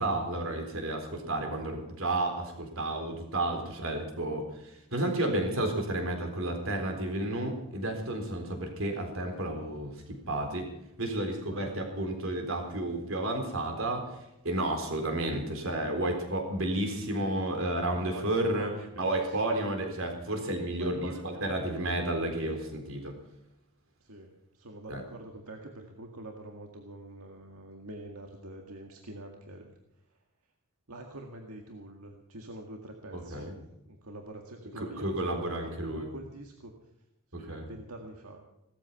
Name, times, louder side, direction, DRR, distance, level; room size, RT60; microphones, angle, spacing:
voice 1, 0.0-10.7 11.0-14.2 14.4-18.7 19.0-23.2 24.9-25.0 33.1-33.5 34.8-36.1 37.3-37.7, right 1 dB, 65° right, 4 dB, 4.0 m, -32 dB
voice 2, 11.4-12.1 15.6-15.7 18.1-19.4 20.7-21.9 24.0-29.7 30.1-30.2 30.9-33.5 33.9-36.7 37.4-38.4, right 1 dB, 80° right, 2 dB, 2.0 m, -46 dB
18.0 x 14.0 x 5.8 m, 0.88 s
head